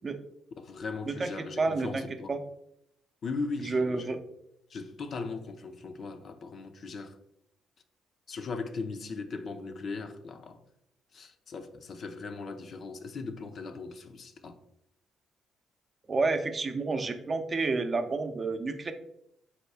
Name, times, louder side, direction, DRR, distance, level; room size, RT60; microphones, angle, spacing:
voice 1, 0.5-2.3 3.2-4.2 4.7-7.2 8.3-10.6 11.1-14.6, left 4 dB, 55° left, 0.5 m, -38 dB
voice 2, 1.6-2.0 2.3-2.4 3.6-4.2 16.1-18.9, right 3 dB, 40° right, 0.5 m, -29 dB
4.2 x 2.3 x 4.6 m
supercardioid pair, 60°, 0 cm